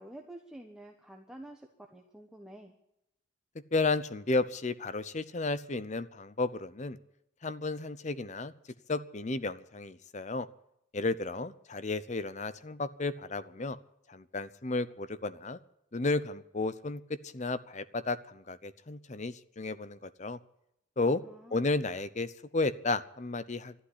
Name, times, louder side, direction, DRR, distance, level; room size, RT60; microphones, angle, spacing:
voice 1, 0.0-2.8 21.2-21.8, right 1 dB, 5° right, 1 dB, 1.2 m, -49 dB
voice 2, 3.7-7.0 7.4-8.5 8.9-10.5 10.9-13.8 14.1-15.6 15.9-20.4 21.0-21.2 21.5-23.7, left 3 dB, 35° left, 15 dB, 0.7 m, -33 dB
12.5 x 11.5 x 9.9 m, 0.80 s
head